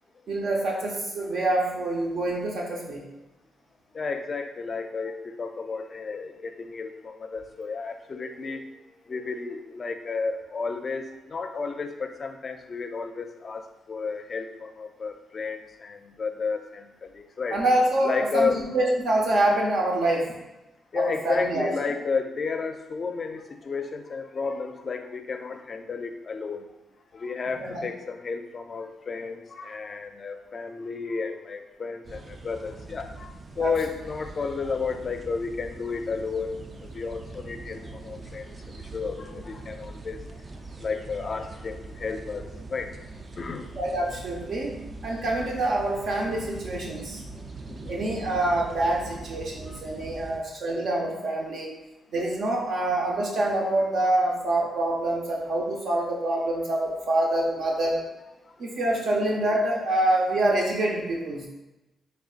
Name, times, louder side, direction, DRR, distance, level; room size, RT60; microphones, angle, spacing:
voice 1, 0.3-3.0 17.5-20.3 20.9-21.9 27.6-27.8 33.6-33.7 43.8-44.7 45.0-47.2 47.9-51.7 52.1-58.0 58.6-61.5, right 1 dB, 70° right, -2 dB, 0.8 m, -26 dB
voice 2, 3.9-8.6 9.1-17.6 18.0-18.6 20.9-26.7 27.1-33.3 33.6-36.6 36.9-38.4 38.9-40.2 40.8-42.9 43.4-43.7 47.7-47.9 49.6-49.8, left 4 dB, 40° left, 7 dB, 0.4 m, -32 dB
sound 1, 32.1-50.4, right 3 dB, 35° right, 0.4 m, -42 dB
5.1 x 3.3 x 2.4 m, 1.0 s
cardioid pair, 95°, 0 cm